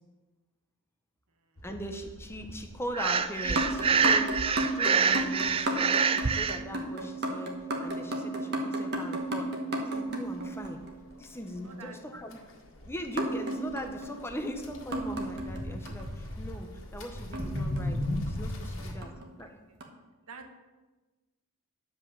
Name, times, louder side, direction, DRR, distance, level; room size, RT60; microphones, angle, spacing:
sound 1, 1.6-18.9, left 1 dB, 60° left, 1.7 m, -41 dB
voice 1, 1.6-10.8 11.2-12.4 12.8-18.0 18.3-19.1 19.4-19.6, equal, 10° left, 4 dB, 0.9 m, -40 dB
Breathing, 2.9-6.6, right 6 dB, 25° right, 0.3 m, -26 dB
sound 2, 3.4-11.1 13.2-16.1 17.3-18.4 19.0-19.3 19.8-19.9, right 1 dB, 45° right, 1.4 m, -34 dB
voice 2, 11.6-11.9 20.3-20.6, right 4 dB, 80° right, 5 dB, 1.3 m, -47 dB
10.0 x 5.3 x 7.2 m, 1.2 s
head